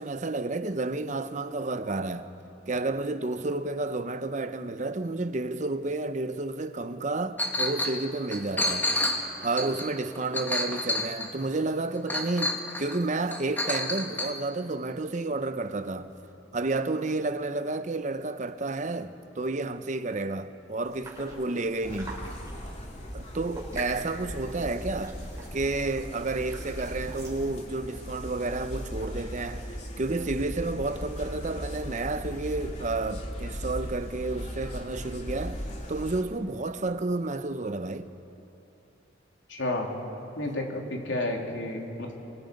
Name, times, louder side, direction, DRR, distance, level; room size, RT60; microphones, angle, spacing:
voice 1, 0.0-2.3 2.7-8.9 9.4-16.1 16.5-22.2 23.1-25.2 25.5-38.1, right 2 dB, 40° right, 0.8 m, -31 dB
Chink clink, 7.4-8.0 8.3-11.4 12.1-13.0 13.3-14.3, left 1 dB, 10° left, 1.7 m, -29 dB
sound 1, 20.8-27.4, right 2 dB, 15° right, 6.5 m, -44 dB
sound 2, 21.8-36.2, equal, 35° left, 2.5 m, -38 dB
voice 2, 39.5-39.9 40.4-42.1, left 1 dB, 75° left, 3.3 m, -31 dB
28.0 x 25.0 x 5.3 m
head